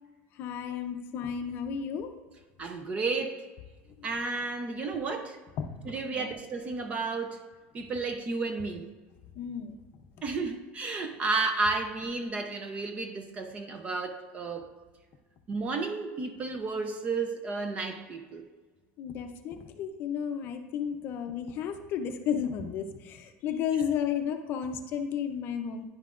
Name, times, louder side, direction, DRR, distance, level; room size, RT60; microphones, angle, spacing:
voice 1, 0.4-2.1 5.6-5.7 6.1-6.3 9.4-9.8 19.0-25.8, left 8 dB, 40° left, 6 dB, 0.5 m, -33 dB
voice 2, 2.6-3.4 4.0-5.4 5.9-7.4 7.7-8.9 10.2-14.7 15.5-18.4, right 3 dB, 20° right, 7 dB, 0.5 m, -32 dB
10.0 x 5.6 x 2.5 m, 1.3 s
cardioid pair, 175°, 6 cm